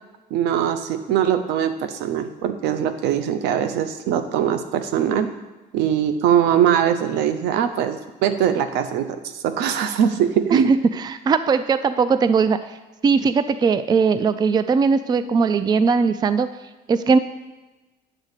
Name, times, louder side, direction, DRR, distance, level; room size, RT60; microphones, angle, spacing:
voice 1, 0.3-5.3 5.7-10.7, right 9 dB, 90° right, 9 dB, 0.7 m, -21 dB
voice 2, 10.5-12.6 13.0-16.5 16.9-17.2, right 5 dB, 25° right, 12 dB, 0.4 m, -19 dB
8.9 x 3.7 x 6.6 m, 1.1 s
cardioid pair, 110°, 17 cm